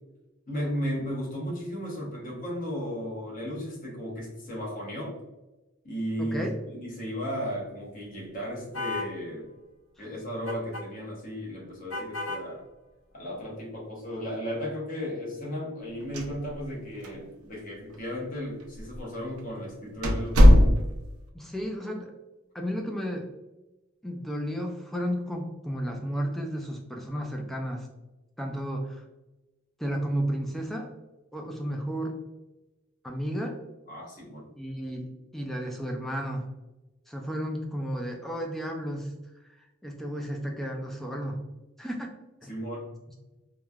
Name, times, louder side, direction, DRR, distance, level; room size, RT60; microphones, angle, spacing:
voice 1, 0.5-5.2 5.8-9.5 10.0-12.6 13.1-20.5 33.9-34.5 42.5-42.9, equal, 40° left, -4 dB, 0.9 m, -35 dB
voice 2, 6.2-6.6 10.0-10.1 21.3-22.1 22.5-23.3 24.0-27.9 28.4-29.0 29.8-30.9 31.3-32.2 33.0-33.6 34.6-36.5 37.1-39.1 39.4-41.4 41.8-42.1 42.4-42.5, equal, ahead, 1 dB, 0.3 m, -33 dB
sound 1, 8.7-9.1 10.5-10.8 11.9-12.4, left 2 dB, 65° left, 1.2 m, -33 dB
sound 2, 16.0-16.8 17.0-17.1 17.9-18.0 18.8-19.0 19.4-19.5 20.0-21.2, left 1 dB, 90° right, 0.5 m, -18 dB
3.1 x 2.2 x 2.3 m, 1.0 s
head